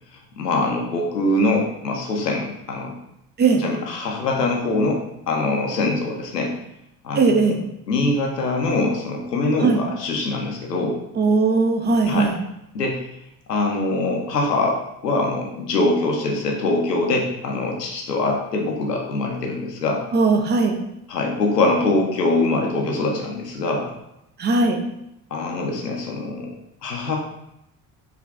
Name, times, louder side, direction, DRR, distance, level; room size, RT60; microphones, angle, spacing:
voice 1, 0.4-2.9 3.6-6.5 7.0-7.5 7.9-11.0 12.1-12.3 12.7-13.0 13.5-20.0 21.1-23.9 25.3-26.5 26.8-27.2, left 2 dB, 85° left, 1 dB, 0.7 m, -23 dB
voice 2, 7.1-7.6 9.6-9.8 11.2-12.4 20.1-20.8 24.4-24.8, right 4 dB, 25° right, 4 dB, 0.5 m, -18 dB
4.7 x 3.1 x 2.4 m, 0.83 s
figure-of-eight pair, 55°, 47 cm